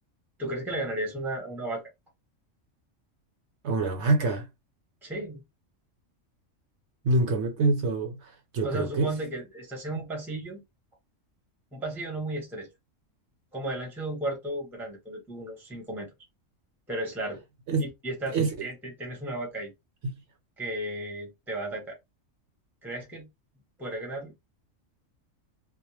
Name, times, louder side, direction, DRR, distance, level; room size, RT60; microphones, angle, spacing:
voice 1, 0.4-1.8 5.0-5.4 8.6-10.6 11.7-12.7 13.5-16.1 16.9-17.4 17.8-19.7 20.6-22.0 22.8-23.3 23.8-24.3, right 1 dB, ahead, 0.6 m, -34 dB
voice 2, 3.6-4.5 7.0-9.1 17.7-17.9 18.3-18.7, right 3 dB, 65° right, 0.8 m, -26 dB
2.3 x 2.0 x 3.0 m
omnidirectional pair, 1.3 m